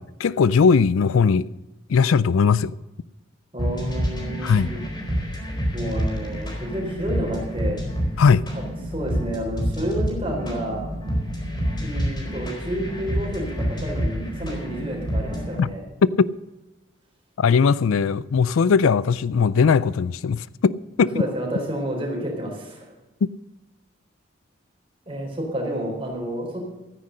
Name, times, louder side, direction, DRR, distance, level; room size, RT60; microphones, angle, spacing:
voice 1, 0.0-1.5 1.9-2.7 4.4-4.7 8.2-8.4 15.6-15.7 16.0-16.3 17.4-21.2, left 5 dB, 85° left, 0.4 m, -19 dB
voice 2, 3.5-4.9 5.7-7.8 8.5-8.6 8.9-10.8 11.8-15.8 21.1-22.9 25.1-26.6, right 1 dB, 25° right, 3.8 m, -30 dB
sound 1, 3.6-15.6, equal, 20° left, 4.3 m, -28 dB
13.5 x 9.8 x 6.4 m
head